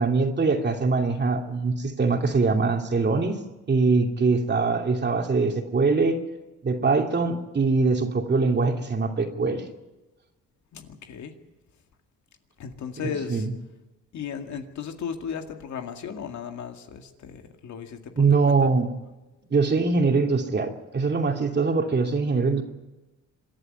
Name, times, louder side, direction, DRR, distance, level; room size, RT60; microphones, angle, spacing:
voice 1, 0.0-3.4 3.7-6.2 6.6-9.6 13.0-13.5 18.2-18.9 19.5-22.6, right 4 dB, 35° right, 3 dB, 2.8 m, -23 dB
voice 2, 10.7-11.3 12.6-13.5 14.1-18.7, left 7 dB, 70° left, 5 dB, 2.2 m, -36 dB
26.5 x 11.0 x 9.7 m, 1.1 s
cardioid pair, 90°, 30 cm